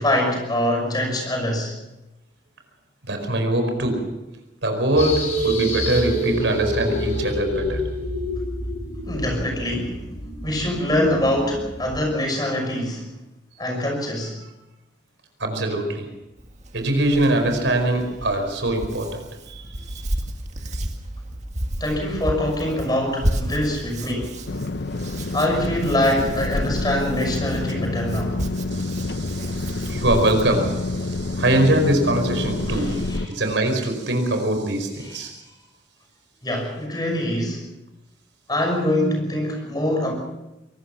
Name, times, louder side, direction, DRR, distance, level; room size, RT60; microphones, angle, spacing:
voice 1, 0.0-1.8 9.1-10.0 10.4-13.1 13.6-14.4 21.8-24.4 25.3-28.4 32.7-33.3 35.0-35.3 36.4-37.6 38.5-40.1, left 1 dB, 20° left, 3 dB, 5.9 m, -24 dB
voice 2, 3.1-4.4 4.6-7.9 15.4-16.1 16.7-19.7 19.9-20.0 28.7-35.3, right 1 dB, 80° right, 5 dB, 4.8 m, -23 dB
sound 1, 5.0-12.0, equal, 40° left, 7.7 m, -27 dB
Hands, 16.4-30.4, right 1 dB, 40° right, 2.0 m, -32 dB
sound 2, 24.5-33.3, left 2 dB, 60° left, 0.7 m, -28 dB
24.0 x 19.5 x 5.8 m, 0.99 s
head